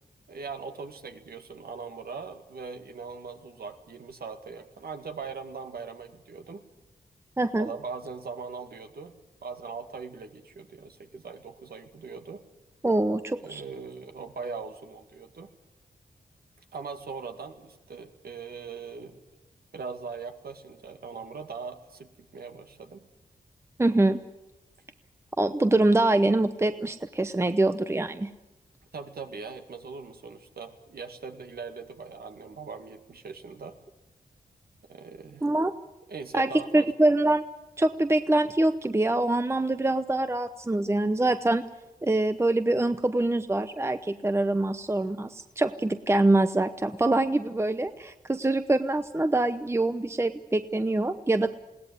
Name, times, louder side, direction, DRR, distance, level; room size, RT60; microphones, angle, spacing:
voice 1, 0.3-6.6 7.6-9.2 9.4-12.4 13.4-15.5 16.7-19.2 19.7-23.0 28.9-33.7 34.9-35.5 36.1-36.9, right 5 dB, 75° right, 6 dB, 2.2 m, -40 dB
voice 2, 7.4-7.7 12.8-13.6 23.8-24.2 25.4-28.3 35.4-35.7 36.3-37.4 37.8-41.6 42.0-51.5, right 2 dB, 15° right, 10 dB, 0.8 m, -24 dB
21.0 x 17.0 x 9.6 m, 1.0 s
cardioid pair, 75°, 16 cm